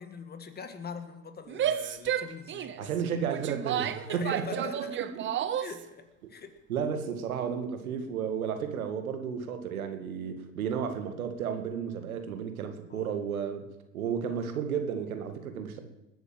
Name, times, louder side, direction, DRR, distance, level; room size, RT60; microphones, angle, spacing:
voice 1, 0.0-2.9 4.1-5.0 5.6-6.6 12.9-13.1, left 5 dB, 25° left, 8 dB, 1.8 m, -43 dB
Female speech woman speaking / Yell, 1.5-5.8, right 10 dB, 30° right, 0.8 m, -32 dB
voice 2, 2.8-4.6 5.0-5.3 6.7-13.7 13.9-15.8, right 7 dB, 90° right, 7 dB, 2.1 m, -33 dB
19.5 x 8.2 x 7.8 m, 0.95 s
hypercardioid pair, 105°, 41 cm